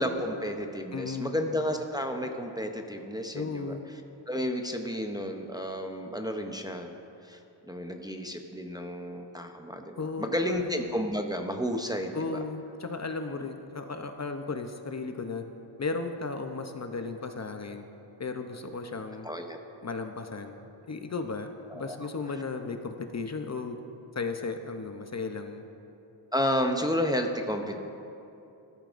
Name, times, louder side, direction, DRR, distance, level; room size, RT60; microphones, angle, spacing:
voice 1, 0.0-3.8 4.3-7.0 7.2-7.4 7.7-12.4 19.2-19.6 21.7-22.1 26.3-27.8, equal, 10° right, 4 dB, 0.7 m, -31 dB
voice 2, 0.9-1.4 3.3-3.9 10.0-10.7 12.1-15.5 15.8-17.9 18.2-19.3 19.8-23.8 24.1-25.7, left 4 dB, 35° left, 6 dB, 0.7 m, -35 dB
15.5 x 12.5 x 2.5 m, 2.8 s
cardioid pair, 75°, 48 cm